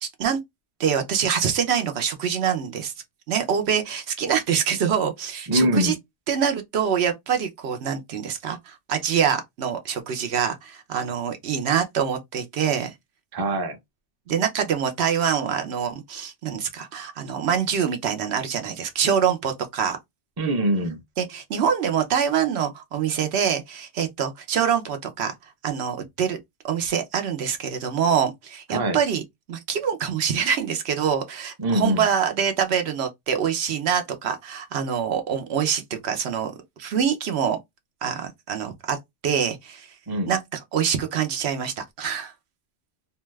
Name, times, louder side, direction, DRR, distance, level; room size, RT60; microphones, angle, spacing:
voice 1, 0.0-0.4 0.8-2.9 3.3-5.9 6.3-12.9 14.3-20.0 21.2-25.3 25.6-26.4 26.6-29.2 29.5-36.5 36.8-37.6 38.0-39.0 39.2-39.9 40.3-40.4 40.7-42.3, right 7 dB, 75° right, 0.9 m, -25 dB
voice 2, 5.5-5.9 13.3-13.8 20.4-21.0 28.7-29.0 31.6-32.1 40.1-40.3, right 1 dB, 25° right, 0.5 m, -23 dB
2.6 x 2.3 x 3.1 m
omnidirectional pair, 1.1 m